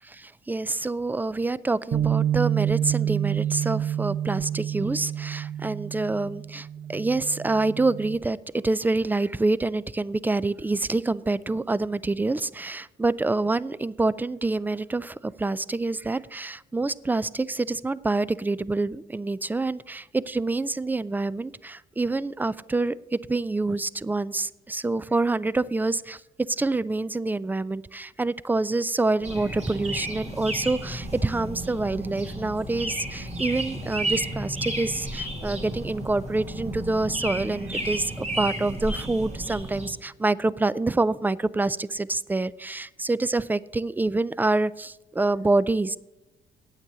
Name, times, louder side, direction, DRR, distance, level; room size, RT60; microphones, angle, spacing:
voice 1, 0.2-8.4 8.6-26.2 26.6-46.0, right 2 dB, 10° right, 19 dB, 0.3 m, -27 dB
Bass guitar, 1.9-8.2, right 10 dB, 55° right, 0.8 m, -28 dB
sound 1, 29.2-39.9, right 1 dB, 35° right, 2.1 m, -32 dB
9.0 x 8.2 x 6.7 m, 0.99 s
cardioid pair, 90°, 20 cm